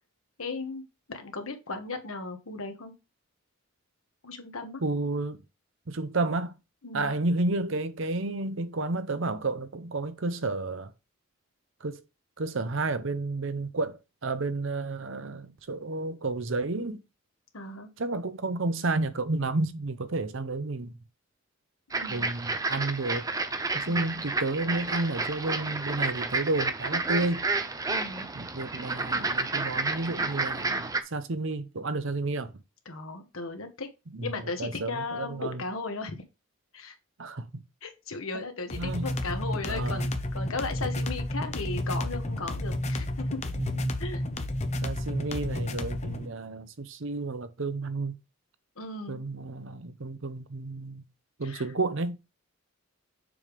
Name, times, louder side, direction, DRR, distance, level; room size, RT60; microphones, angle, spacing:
voice 1, 0.4-0.8 1.1-2.9 4.2-4.8 6.8-7.1 17.5-17.9 21.9-22.3 23.9-24.2 27.9-28.3 32.8-33.9 34.2-36.1 36.7-36.9 37.8-43.4 44.0-44.2 48.8-49.2 51.4-51.6, left 3 dB, 75° left, 1.4 m, -36 dB
voice 2, 4.8-5.4 5.9-6.5 6.9-10.9 11.8-12.0 12.4-17.0 18.0-21.0 22.1-23.3 23.7-27.4 28.3-32.5 34.1-34.3 34.6-35.6 37.2-37.6 38.7-39.1 39.7-40.1 43.6-44.0 44.8-48.2 49.1-51.1 51.4-52.3, right 2 dB, 60° right, 0.7 m, -31 dB
sound 1, 21.9-31.0, right 3 dB, 15° right, 0.4 m, -30 dB
sound 2, 38.7-46.3, left 1 dB, 30° left, 0.8 m, -31 dB
6.9 x 3.4 x 5.2 m
head